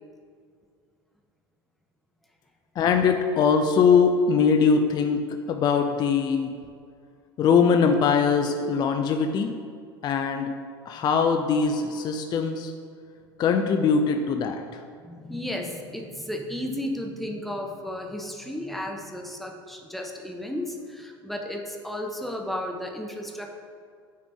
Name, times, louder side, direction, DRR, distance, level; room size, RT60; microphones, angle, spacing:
voice 1, 2.8-6.5 7.4-9.5 10.0-10.5 10.9-12.7 13.4-14.6, left 6 dB, 35° left, 5 dB, 0.4 m, -22 dB
voice 2, 15.0-23.5, left 1 dB, ahead, 1 dB, 0.8 m, -34 dB
9.2 x 3.8 x 3.5 m, 2.2 s
figure-of-eight pair, 80°, 13 cm